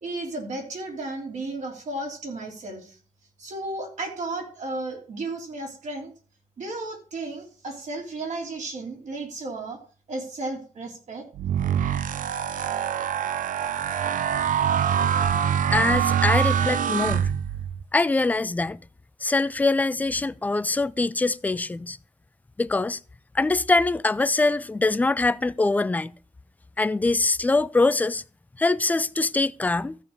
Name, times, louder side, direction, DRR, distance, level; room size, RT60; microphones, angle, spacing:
voice 1, 0.0-3.0 3.4-6.1 6.6-9.8 10.1-11.3, right 2 dB, 65° right, 3.3 m, -34 dB
sound 1, 11.4-17.8, right 8 dB, 90° right, 0.5 m, -24 dB
voice 2, 15.7-17.3 17.9-18.8 19.2-22.0 22.6-23.0 23.3-26.1 26.8-28.2 28.6-30.0, left 3 dB, 10° left, 0.4 m, -23 dB
14.0 x 4.8 x 5.4 m
wide cardioid pair, 130°, 13 cm